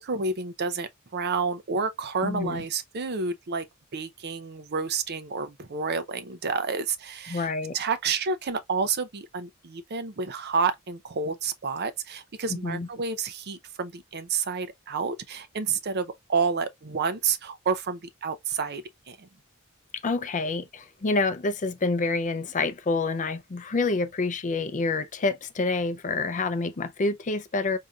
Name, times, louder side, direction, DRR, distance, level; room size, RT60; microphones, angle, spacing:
voice 1, 0.0-3.7 3.9-19.3, right 5 dB, 50° right, 0.6 m, -30 dB
voice 2, 2.2-2.6 7.3-7.8 12.5-12.9 20.0-27.8, left 3 dB, 35° left, 0.5 m, -27 dB
5.0 x 2.7 x 2.3 m
head